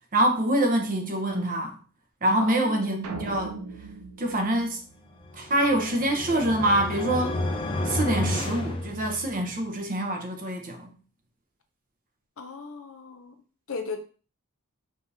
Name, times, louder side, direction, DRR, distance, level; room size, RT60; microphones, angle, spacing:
voice 1, 0.1-1.8 2.2-3.6 4.2-4.8 5.3-7.4 7.8-10.9, right 1 dB, 40° right, 0.8 m, -25 dB
voice 2, 2.4-2.8 12.4-13.3 13.7-14.0, left 4 dB, 60° left, 0.6 m, -36 dB
sound 1, 3.0-5.5, right 3 dB, 85° right, 0.6 m, -40 dB
sound 2, 5.2-9.5, left 2 dB, 25° left, 0.4 m, -31 dB
5.0 x 2.5 x 2.7 m
head